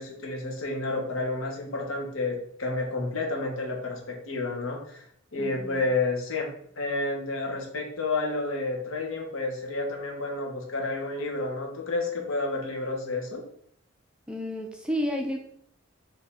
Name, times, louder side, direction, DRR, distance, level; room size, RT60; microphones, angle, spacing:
voice 1, 0.0-5.0 5.3-6.5 6.8-13.4, left 2 dB, 85° left, 1 dB, 1.2 m, -30 dB
voice 2, 5.4-5.9 14.3-15.4, equal, 5° right, 2 dB, 0.4 m, -31 dB
5.1 x 2.8 x 3.4 m, 0.69 s
head